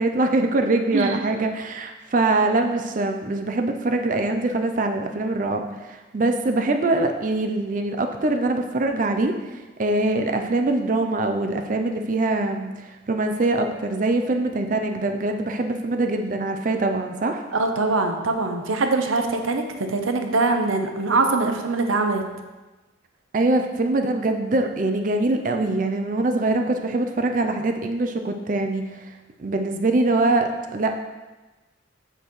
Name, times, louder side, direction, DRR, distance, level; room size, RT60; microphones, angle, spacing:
voice 1, 0.0-17.4 23.3-29.0 29.4-31.0, right 2 dB, 40° right, 5 dB, 0.4 m, -23 dB
voice 2, 17.5-22.2, right 3 dB, 90° right, 5 dB, 0.8 m, -23 dB
7.7 x 6.7 x 3.1 m, 1.2 s
head